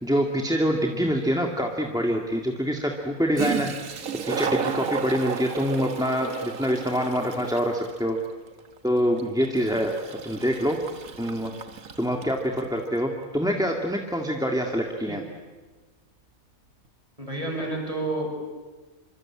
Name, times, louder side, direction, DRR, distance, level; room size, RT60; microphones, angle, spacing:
voice 1, 0.0-3.7 4.3-8.2 8.8-9.9 10.2-10.8 11.2-11.5 12.0-15.2, equal, 5° right, 2 dB, 1.9 m, -25 dB
Toilet flush, 3.3-12.7, right 6 dB, 80° right, 1.7 m, -33 dB
voice 2, 17.2-18.3, right 2 dB, 25° right, 1 dB, 7.1 m, -30 dB
25.5 x 25.0 x 8.8 m, 1.3 s
omnidirectional pair, 1.5 m